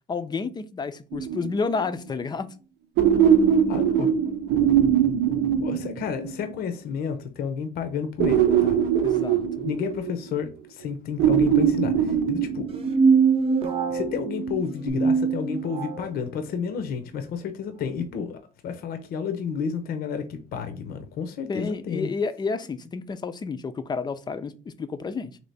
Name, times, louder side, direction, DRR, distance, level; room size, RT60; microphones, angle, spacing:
voice 1, 0.1-2.5 9.0-9.7 21.4-25.4, left 4 dB, 25° left, 0.4 m, -30 dB
sound 1, 1.1-1.8 3.0-6.5 8.2-10.4 11.2-13.2 14.9-15.0, right 8 dB, 85° right, 0.7 m, -22 dB
voice 2, 3.7-4.1 5.6-8.8 9.6-12.7 13.9-22.1, left 6 dB, 65° left, 0.6 m, -31 dB
sound 2, 12.7-16.1, right 5 dB, 35° right, 0.8 m, -23 dB
3.3 x 2.8 x 4.0 m
cardioid pair, 110°, 17 cm